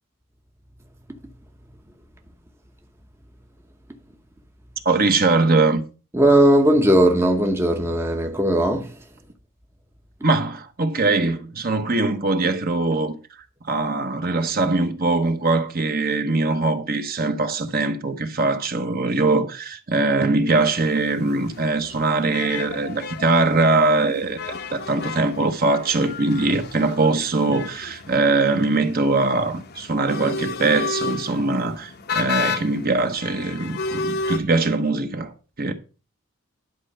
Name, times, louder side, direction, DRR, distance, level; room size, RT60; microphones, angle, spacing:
voice 1, 4.8-5.8 10.2-13.2 13.7-35.7, right 3 dB, 45° right, 1.1 m, -22 dB
voice 2, 6.1-9.0 32.1-32.2, right 1 dB, 10° right, 0.8 m, -18 dB
sound 1, 20.5-34.4, left 4 dB, 50° left, 0.8 m, -32 dB
11.0 x 4.4 x 6.6 m
head